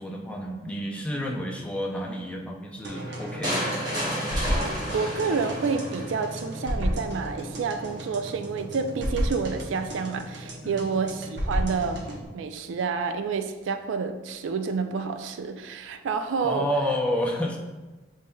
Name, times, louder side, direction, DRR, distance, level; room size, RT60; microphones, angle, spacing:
voice 1, 0.0-3.8 10.6-10.9 16.4-17.6, equal, 5° left, 0 dB, 0.4 m, -30 dB
sound 1, 2.8-12.2, equal, 65° right, 0.8 m, -33 dB
sound 2, 3.4-6.4, equal, 20° right, 1.2 m, -31 dB
voice 2, 4.9-12.0 12.3-16.7, right 5 dB, 80° right, 8 dB, 0.3 m, -29 dB
6.8 x 3.2 x 2.2 m, 1.2 s
head